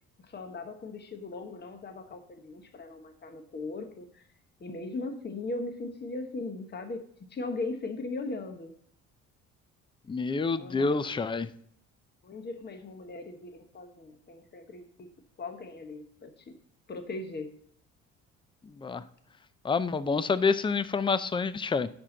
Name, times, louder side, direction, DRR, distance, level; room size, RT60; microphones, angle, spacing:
voice 1, 0.2-4.2 4.6-8.7 10.5-11.0 12.2-15.1 15.4-16.5 16.9-17.5, left 3 dB, 35° left, 7 dB, 1.2 m, -39 dB
voice 2, 10.1-11.5 18.6-19.0 19.6-21.9, left 4 dB, 15° left, 15 dB, 0.5 m, -28 dB
11.0 x 4.4 x 3.8 m, 0.66 s
supercardioid pair, 80°, 30 cm